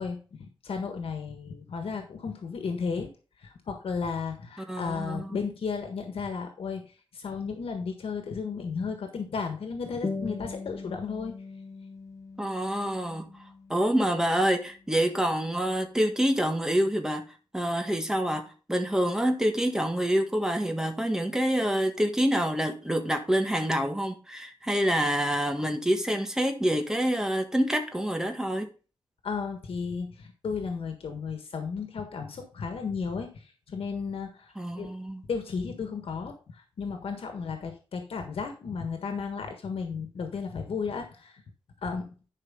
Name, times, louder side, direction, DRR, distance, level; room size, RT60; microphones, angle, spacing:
voice 1, 0.0-3.1 3.4-6.8 7.1-11.3 29.2-34.9 35.3-41.4 41.8-42.1, left 5 dB, 85° left, 1.5 m, -34 dB
voice 2, 4.6-5.4 12.4-13.3 13.7-17.2 17.5-28.7 34.6-35.2, equal, 5° right, 1.4 m, -27 dB
sound 1, 10.0-15.0, left 4 dB, 30° left, 1.2 m, -40 dB
11.0 x 5.1 x 3.7 m
wide cardioid pair, 170°, 9 cm